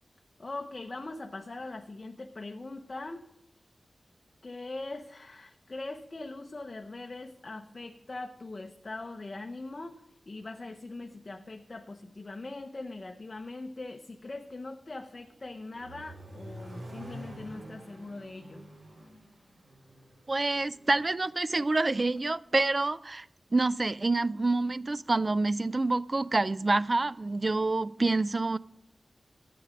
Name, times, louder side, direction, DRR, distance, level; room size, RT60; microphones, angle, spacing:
voice 1, 0.4-3.2 4.4-18.6, left 2 dB, 40° left, 0.7 m, -41 dB
Accelerating revving vroom, 15.2-21.2, right 1 dB, 60° right, 5.7 m, -47 dB
voice 2, 20.3-23.3 23.5-28.6, right 2 dB, 35° right, 0.3 m, -27 dB
12.5 x 8.6 x 5.1 m
wide cardioid pair, 100°, 0 cm